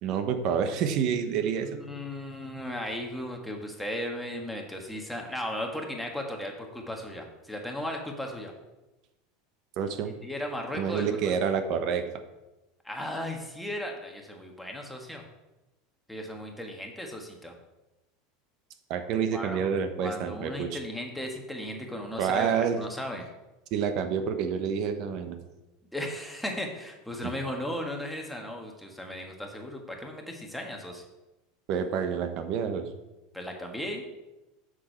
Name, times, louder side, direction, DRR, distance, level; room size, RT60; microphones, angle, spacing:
voice 1, 0.0-1.8 9.8-10.1 10.7-12.1 18.9-20.8 22.2-22.8 23.7-25.4 27.2-27.3 31.7-32.9, right 7 dB, 50° right, 8 dB, 1.0 m, -28 dB
voice 2, 1.6-8.5 10.2-11.3 12.8-15.2 16.1-17.5 19.3-19.7 20.0-23.2 25.9-31.0 33.3-34.1, left 1 dB, ahead, 1 dB, 1.4 m, -36 dB
7.5 x 6.3 x 5.7 m, 1.0 s
supercardioid pair, 145°, 0 cm